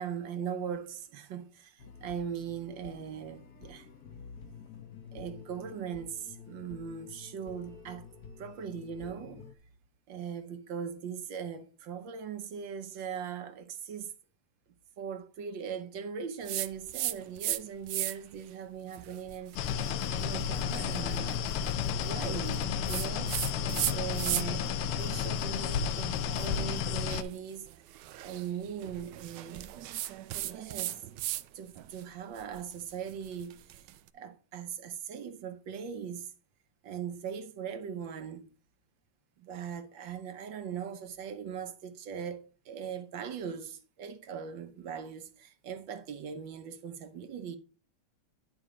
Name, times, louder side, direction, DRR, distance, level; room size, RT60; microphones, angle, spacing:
voice 1, 0.0-3.9 5.1-8.1 8.4-9.5 10.1-14.1 15.0-21.4 22.0-23.4 23.9-27.7 28.2-29.8 30.3-31.0 31.5-33.9 34.1-36.3 36.8-38.5 39.4-47.6, right 7 dB, 65° right, 1.5 m, -40 dB
sound 1, 1.8-9.5, left 6 dB, 55° left, 1.3 m, -50 dB
sound 2, 16.5-17.6 17.9-18.4 18.9-24.7 25.0-31.5 31.8-34.0, right 14 dB, 85° right, 0.9 m, -37 dB
sound 3, 19.6-27.2, left 8 dB, 85° left, 1.6 m, -32 dB
11.0 x 4.4 x 4.9 m
omnidirectional pair, 2.4 m